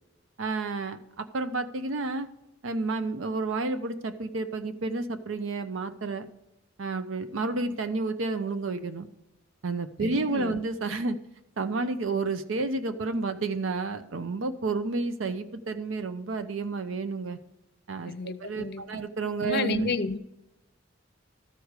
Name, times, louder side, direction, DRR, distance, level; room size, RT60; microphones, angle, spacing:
voice 1, 0.4-2.3 2.6-6.3 6.8-9.1 9.6-11.2 11.6-17.4 17.9-19.9, right 3 dB, 80° right, 0.6 m, -30 dB
voice 2, 10.0-10.6 18.1-18.8 19.4-20.2, left 3 dB, 55° left, 0.6 m, -31 dB
13.5 x 4.7 x 6.5 m
head